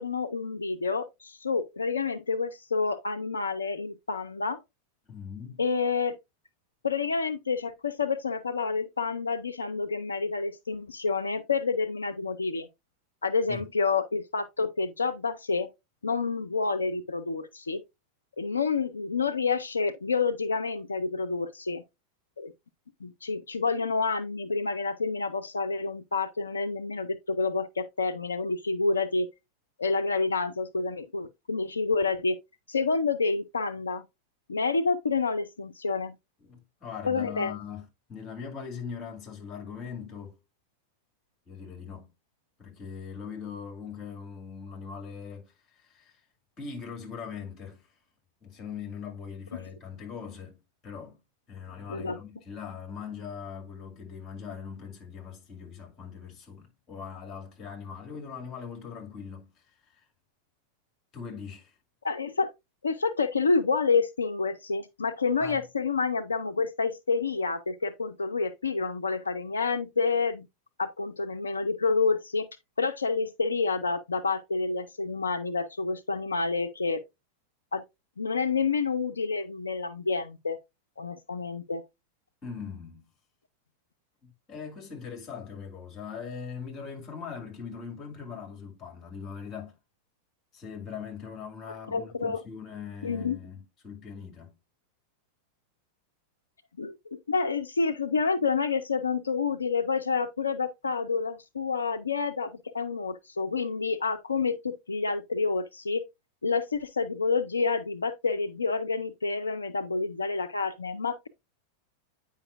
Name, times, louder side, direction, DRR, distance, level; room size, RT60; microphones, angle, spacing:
voice 1, 0.0-4.6 5.6-6.1 6.8-12.7 13.2-15.7 16.0-17.8 18.4-21.8 22.4-22.5 23.0-29.3 29.8-32.4 32.7-34.0 34.5-36.2 37.0-37.5 51.9-52.2 62.0-62.5 62.8-70.5 70.8-72.5 72.8-77.0 77.7-77.8 78.2-80.6 81.0-81.8 91.9-92.4 93.0-93.4 96.8-97.0 97.3-106.0 106.4-111.3, left 4 dB, 75° left, 0.4 m, -28 dB
voice 2, 5.1-5.6 13.5-13.7 36.4-40.4 41.5-42.1 42.6-46.2 46.6-47.9 48.4-50.6 50.8-51.2 51.5-60.0 61.1-61.7 65.4-65.7 82.4-83.1 84.5-89.8 90.5-94.5, left 6 dB, 25° left, 2.3 m, -41 dB
8.8 x 5.1 x 2.5 m
figure-of-eight pair, 90°, 0 cm